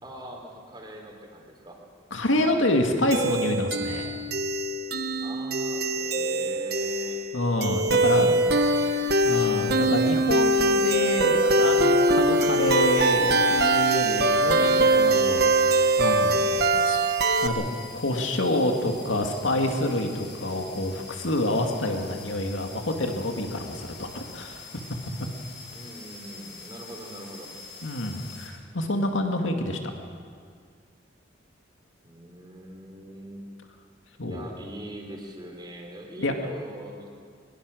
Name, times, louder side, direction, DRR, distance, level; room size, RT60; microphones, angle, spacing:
voice 1, 0.0-1.8 5.2-7.2 7.9-9.2 25.7-27.5 32.0-33.5 34.2-37.1, right 1 dB, 20° right, 1 dB, 3.6 m, -42 dB
voice 2, 2.1-4.1 7.3-8.4 9.2-15.5 16.0-17.0 17.4-17.6 17.9-24.6 27.8-29.8 34.2-34.5 36.2-36.3, left 1 dB, 85° left, 3 dB, 2.2 m, -27 dB
sound 1, 3.1-17.5, right 1 dB, 55° right, 1.2 m, -22 dB
sound 2, 12.6-28.5, left 3 dB, 60° left, 6.6 m, -45 dB
23.0 x 22.0 x 6.4 m, 2.1 s
head